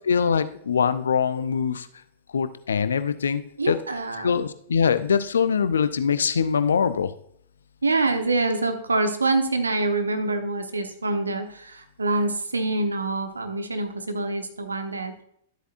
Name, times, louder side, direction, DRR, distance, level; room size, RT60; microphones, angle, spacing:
voice 1, 0.0-1.9 2.3-3.8 4.2-7.1, left 6 dB, 70° left, 13 dB, 0.6 m, -23 dB
voice 2, 3.6-4.4 7.8-15.2, right 2 dB, 80° right, 7 dB, 1.2 m, -26 dB
12.5 x 8.0 x 2.6 m, 0.66 s
figure-of-eight pair, 100°, 0 cm